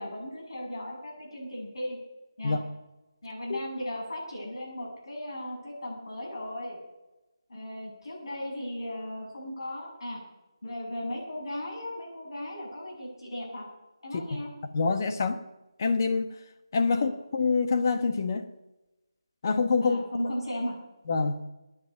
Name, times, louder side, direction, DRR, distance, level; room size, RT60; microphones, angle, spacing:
voice 1, 0.0-2.0 2.4-2.6 3.2-6.8 7.5-10.2 10.6-13.6 14.0-14.5 16.9-17.1 19.8-20.8, left 1 dB, 65° left, -2 dB, 7.3 m, -36 dB
voice 2, 14.7-15.4 15.8-16.3 16.7-18.5 19.4-20.0 21.1-21.4, left 4 dB, 40° left, 7 dB, 1.4 m, -26 dB
23.0 x 9.6 x 5.3 m, 1.0 s
figure-of-eight pair, 165°, 3 cm